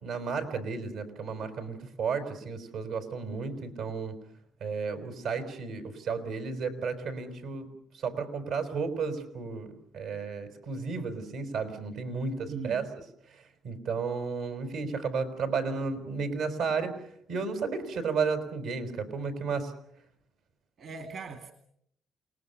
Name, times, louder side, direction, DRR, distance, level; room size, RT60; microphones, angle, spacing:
voice 1, 0.0-4.1 4.6-7.7 7.9-9.7 9.9-12.9 13.6-16.9 17.3-19.7, right 5 dB, 90° right, 7 dB, 4.7 m, -33 dB
voice 2, 12.5-12.9 20.8-21.5, right 5 dB, 65° right, 7 dB, 2.4 m, -39 dB
29.0 x 19.5 x 7.0 m, 0.70 s
cardioid pair, 90°, 0 cm